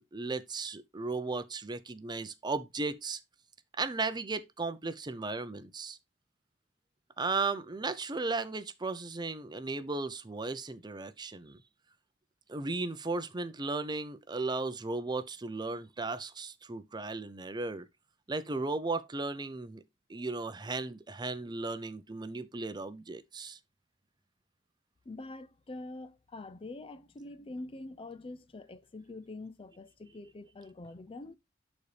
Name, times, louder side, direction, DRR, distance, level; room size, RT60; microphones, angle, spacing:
voice 1, 0.0-3.2 3.8-6.0 7.2-11.6 12.5-17.9 18.3-19.8 20.1-23.6, right 3 dB, 25° right, 0.6 m, -35 dB
voice 2, 25.1-31.4, left 2 dB, 30° left, 0.4 m, -45 dB
11.5 x 4.2 x 3.3 m
head